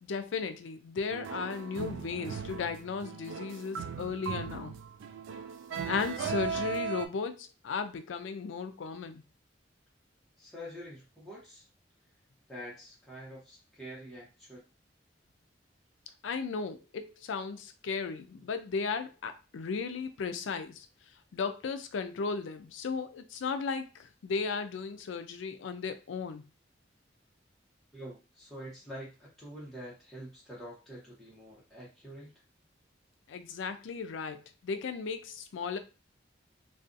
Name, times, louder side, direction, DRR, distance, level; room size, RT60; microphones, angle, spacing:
voice 1, 0.0-4.7 5.8-9.2 16.2-20.9 21.3-26.4 33.3-35.8, left 5 dB, 90° left, 0.4 m, -35 dB
sound 1, 1.1-7.1, right 6 dB, 90° right, 0.3 m, -37 dB
voice 2, 10.4-11.6 12.5-14.6 27.9-32.3, equal, ahead, 0.9 m, -46 dB
2.4 x 2.3 x 2.5 m
head